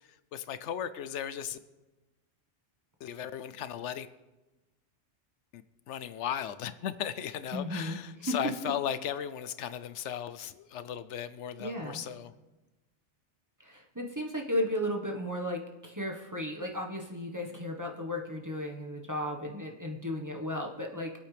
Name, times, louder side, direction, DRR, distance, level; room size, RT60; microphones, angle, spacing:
voice 1, 0.3-1.6 3.0-4.1 5.5-5.6 5.9-12.3, left 9 dB, 80° left, 13 dB, 0.9 m, -36 dB
voice 2, 7.5-8.4 8.6-8.7 11.6-12.0 13.6-21.1, left 1 dB, 15° right, 1 dB, 1.2 m, -35 dB
24.0 x 8.4 x 3.3 m, 1.1 s
omnidirectional pair, 1.2 m